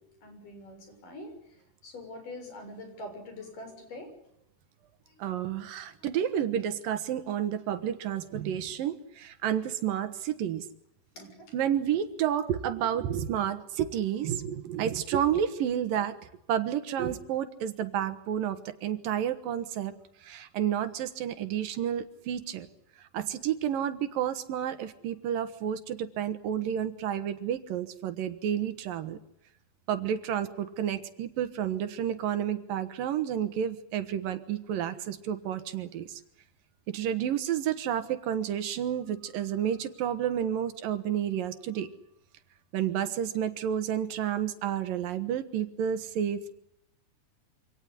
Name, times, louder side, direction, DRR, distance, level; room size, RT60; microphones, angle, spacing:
voice 1, 0.2-1.3 1.8-4.1 5.1-5.2 11.1-11.3, left 1 dB, 65° left, 6 dB, 8.3 m, -44 dB
voice 2, 5.2-10.7 11.5-16.2 16.5-19.9 20.2-22.7 23.1-29.2 29.9-36.2 36.9-41.9 42.7-46.5, right 9 dB, 75° right, 11 dB, 3.0 m, -30 dB
26.5 x 18.0 x 9.9 m, 0.77 s
omnidirectional pair, 4.1 m